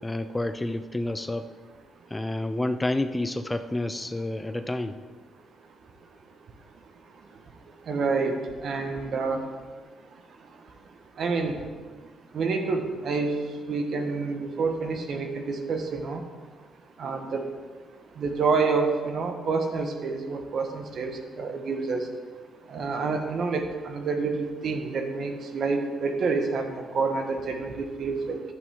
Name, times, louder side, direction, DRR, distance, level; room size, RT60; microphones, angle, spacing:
voice 1, 0.0-1.5 2.1-5.0, left 1 dB, 15° left, 9 dB, 0.5 m, -29 dB
voice 2, 7.9-9.4 11.2-11.6 12.3-13.3 13.7-16.2 17.0-17.4 18.2-22.1 22.7-28.4, right 4 dB, 60° right, 5 dB, 1.2 m, -28 dB
11.5 x 8.1 x 3.7 m, 1.4 s
cardioid pair, 90°, 0 cm